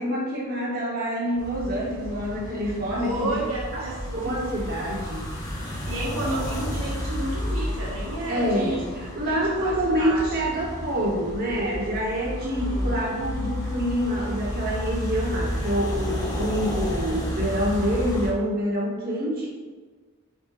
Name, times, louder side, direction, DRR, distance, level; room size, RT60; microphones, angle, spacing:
voice 1, 0.0-3.4 3.7-3.9 4.1-5.3 8.3-19.5, equal, 45° right, -4 dB, 1.7 m, -27 dB
sound 1, 1.4-18.3, left 1 dB, 20° left, 1.4 m, -31 dB
voice 2, 3.0-4.0 5.9-8.9 9.3-10.5 12.4-13.0, right 1 dB, 85° right, -6 dB, 1.7 m, -31 dB
4.6 x 4.3 x 5.0 m, 1.4 s
head